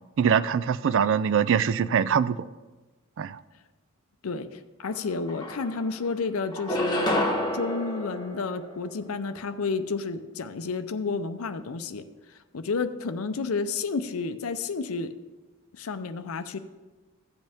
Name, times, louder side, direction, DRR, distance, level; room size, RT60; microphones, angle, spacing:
voice 1, 0.2-2.5 3.2-3.4, right 7 dB, 60° right, 17 dB, 0.4 m, -23 dB
voice 2, 4.2-7.2 7.5-12.0 12.5-15.1 15.8-16.6, left 4 dB, 75° left, 9 dB, 0.6 m, -31 dB
sound 1, 4.9-5.0 5.3-6.1 6.5-9.1, equal, 20° left, 1.3 m, -29 dB
14.5 x 7.9 x 3.5 m, 1.2 s
head